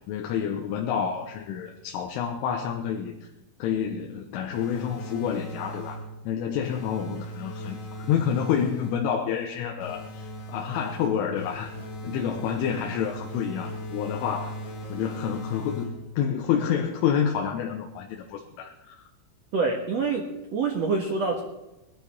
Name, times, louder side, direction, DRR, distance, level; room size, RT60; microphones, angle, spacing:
voice 1, 0.0-3.1 3.6-7.8 8.1-11.7 12.0-14.6 14.9-19.0, left 8 dB, 90° left, 2 dB, 3.6 m, -28 dB
sound 1, 4.5-6.2 6.6-9.1 9.8-16.2, equal, 60° left, 4.5 m, -38 dB
voice 2, 19.5-21.4, right 4 dB, 85° right, 0 dB, 1.4 m, -26 dB
21.5 x 12.0 x 4.4 m, 0.98 s
omnidirectional pair, 5.5 m